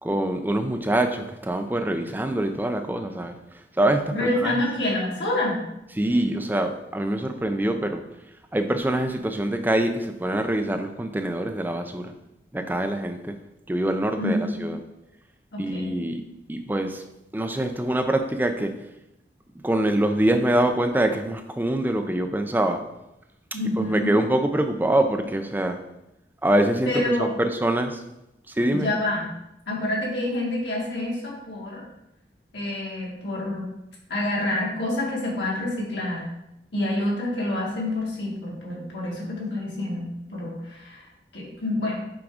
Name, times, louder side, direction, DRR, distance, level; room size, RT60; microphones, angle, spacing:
voice 1, 0.0-3.3 3.8-4.6 6.0-8.0 8.5-12.1 12.5-13.4 13.7-14.8 15.6-16.2 16.5-17.0 17.3-18.7 19.6-22.8 23.8-25.8 26.4-26.9 27.2-28.0 28.5-28.9, right 1 dB, 10° right, 6 dB, 0.4 m, -24 dB
voice 2, 4.1-5.6 14.2-14.6 15.5-15.9 23.5-24.2 26.9-27.3 28.7-29.2 29.7-31.8 32.5-33.7 34.1-36.2 36.7-41.0 41.3-42.0, left 1 dB, 85° left, -4 dB, 2.1 m, -27 dB
6.1 x 3.6 x 4.9 m, 0.88 s
head